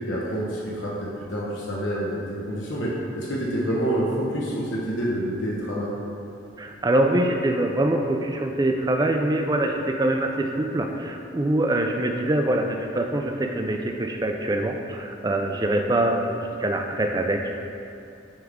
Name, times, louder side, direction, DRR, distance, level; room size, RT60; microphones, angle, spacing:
voice 1, 0.0-2.9 3.2-5.9, right 1 dB, 85° left, -5 dB, 1.0 m, -27 dB
voice 2, 6.6-17.5, right 1 dB, 20° right, 3 dB, 0.4 m, -24 dB
9.4 x 3.5 x 3.6 m, 2.7 s
head